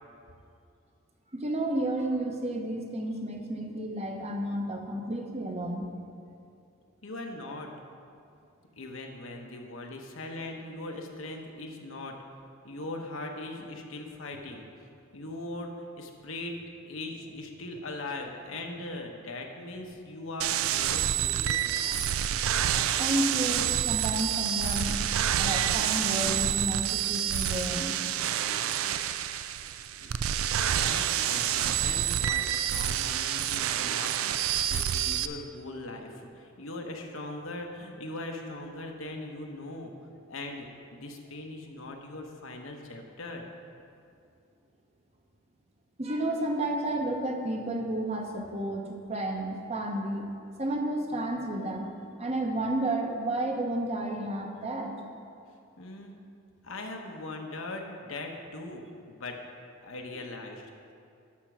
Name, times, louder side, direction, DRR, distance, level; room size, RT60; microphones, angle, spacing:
voice 1, 1.3-5.9 23.0-25.1 25.4-28.2 46.0-50.3 50.6-51.9 52.2-54.9 60.1-60.2, right 1 dB, 30° right, 2 dB, 0.9 m, -31 dB
voice 2, 7.0-7.7 8.8-12.1 12.6-14.7 15.1-16.6 16.8-22.1 30.0-39.9 40.3-43.4 55.8-56.1 56.6-59.4 59.8-60.9, left 2 dB, 75° left, 2 dB, 1.0 m, -40 dB
sound 1, 20.4-35.3, right 10 dB, 80° right, 0.4 m, -28 dB
12.0 x 4.4 x 6.1 m, 2.4 s
head